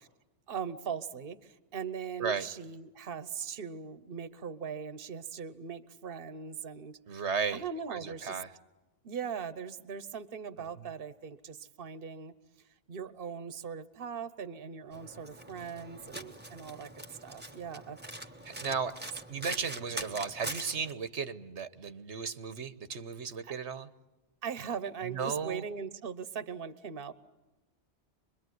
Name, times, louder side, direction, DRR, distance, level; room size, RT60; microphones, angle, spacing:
voice 1, 0.5-8.4 9.0-12.3 12.9-18.0 23.4-23.5 24.4-27.1, right 6 dB, 55° right, 14 dB, 1.2 m, -40 dB
voice 2, 7.1-8.5 18.4-18.9 19.3-23.9 25.0-25.6, right 6 dB, 90° right, 12 dB, 1.5 m, -35 dB
Domestic sounds home sounds, 14.9-20.9, right 1 dB, 10° right, 1.4 m, -43 dB
26.0 x 22.0 x 9.4 m, 1.0 s
omnidirectional pair, 1.1 m